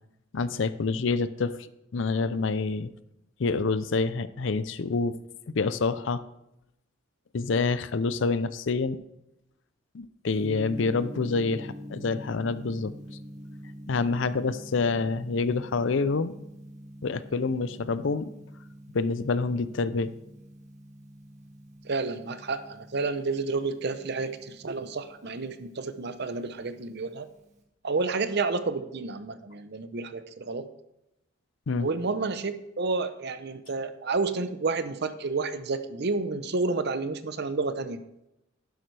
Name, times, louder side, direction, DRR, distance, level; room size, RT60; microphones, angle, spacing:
voice 1, 0.3-1.6 1.9-2.9 3.4-5.2 5.5-6.2 7.3-9.0 9.9-12.9 13.9-16.3 17.0-18.3 18.9-20.1 31.7-31.9, left 4 dB, 65° left, 15 dB, 0.5 m, -27 dB
Gong, 10.4-27.6, equal, 35° right, 1.7 m, -46 dB
voice 2, 21.8-27.3 27.8-30.7 31.7-38.0, right 3 dB, 55° right, 11 dB, 0.7 m, -30 dB
11.5 x 10.5 x 3.3 m, 0.84 s
head